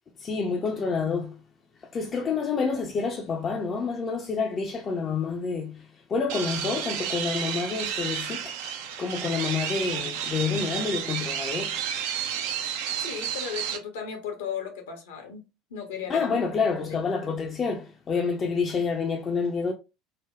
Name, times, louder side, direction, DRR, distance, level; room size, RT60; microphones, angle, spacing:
voice 1, 0.2-1.4 1.9-5.8 6.1-8.6 9.0-11.7 16.1-19.7, left 5 dB, 35° left, 0.4 m, -28 dB
sound 1, 6.3-13.8, right 8 dB, 60° right, 0.4 m, -31 dB
voice 2, 13.0-15.4 15.7-16.3 16.7-17.0, left 7 dB, 65° left, 0.7 m, -36 dB
3.3 x 2.1 x 2.3 m
figure-of-eight pair, 65°, 0 cm